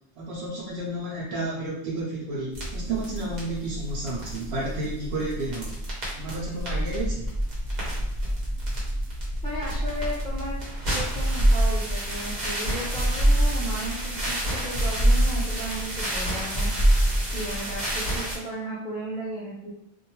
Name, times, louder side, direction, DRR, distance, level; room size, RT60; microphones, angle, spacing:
voice 1, 0.1-5.8 6.1-7.3, right 2 dB, 85° right, -6 dB, 0.9 m, -31 dB
sound 1, 2.5-18.4, right 1 dB, 45° right, 1.0 m, -26 dB
voice 2, 9.4-10.6 10.9-16.7 17.3-19.7, right 1 dB, 5° left, -10 dB, 0.7 m, -35 dB
2.6 x 2.2 x 2.9 m, 0.81 s
omnidirectional pair, 1.1 m